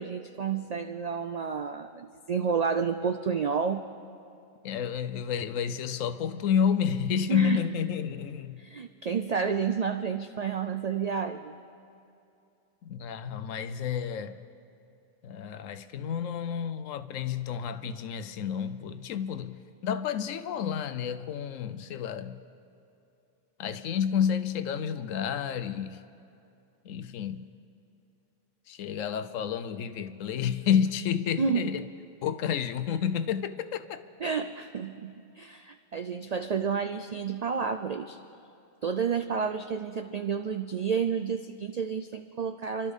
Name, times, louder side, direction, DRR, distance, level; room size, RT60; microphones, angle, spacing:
voice 1, 0.0-3.9 7.3-7.6 8.6-11.6 31.4-31.7 34.2-38.2 38.8-42.9, right 6 dB, 85° right, 0.3 m, -30 dB
voice 2, 4.6-8.6 12.8-14.4 15.2-22.4 23.6-26.0 26.8-27.5 28.7-31.9 32.2-34.0, left 8 dB, 85° left, 1.0 m, -30 dB
27.0 x 12.5 x 3.6 m
omnidirectional pair, 1.3 m